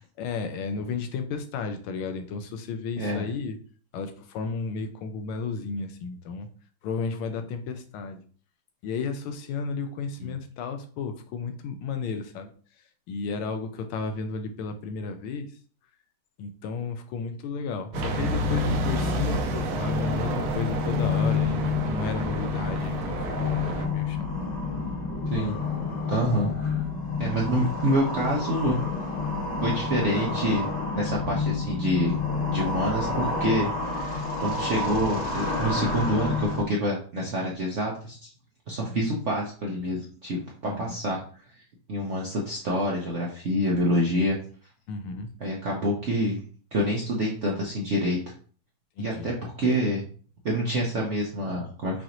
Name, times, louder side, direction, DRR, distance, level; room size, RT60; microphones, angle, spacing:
voice 1, 0.2-3.6 3.9-6.5 6.8-8.2 8.8-12.5 13.1-15.6 16.4-24.3 26.5-26.6 27.6-27.7 38.8-39.0 40.7-40.8 44.9-45.3 49.0-49.3, left 4 dB, 90° left, 7 dB, 1.6 m, -33 dB
sound 1, 17.9-36.6, left 4 dB, 50° left, 0.5 m, -29 dB
sound 2, 17.9-23.9, right 3 dB, 85° right, 1.6 m, -30 dB
voice 2, 26.1-26.5 27.2-28.8 29.6-30.7 31.0-32.2 32.5-38.3 38.7-41.2 41.9-44.4 45.4-46.4 46.7-48.2 49.0-50.0 50.4-52.0, equal, 65° right, -2 dB, 0.7 m, -27 dB
6.0 x 2.5 x 2.9 m, 0.42 s
omnidirectional pair, 2.3 m